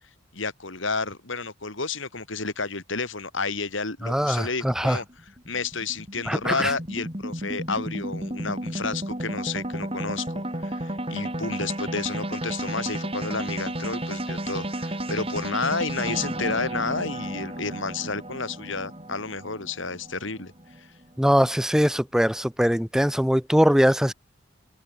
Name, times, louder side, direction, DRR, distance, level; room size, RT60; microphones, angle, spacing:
voice 1, 0.3-5.0 5.5-20.5 20.8-20.9, left 4 dB, 70° left, 3.4 m, -31 dB
voice 2, 4.0-5.0 6.3-6.7 21.2-24.1, equal, 5° right, 0.8 m, -21 dB
sound 1, 4.6-21.0, right 1 dB, 25° right, 7.4 m, -33 dB
open air
head